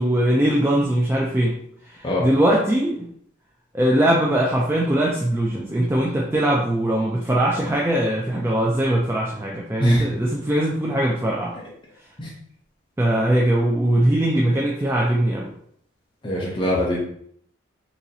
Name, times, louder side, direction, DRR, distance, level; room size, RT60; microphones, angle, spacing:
voice 1, 0.0-1.6 1.8-3.1 3.7-11.5 13.0-15.5, right 1 dB, 10° right, -3 dB, 0.3 m, -21 dB
voice 2, 16.2-17.0, equal, 25° left, -4 dB, 0.7 m, -22 dB
4.0 x 2.9 x 2.6 m, 0.66 s
head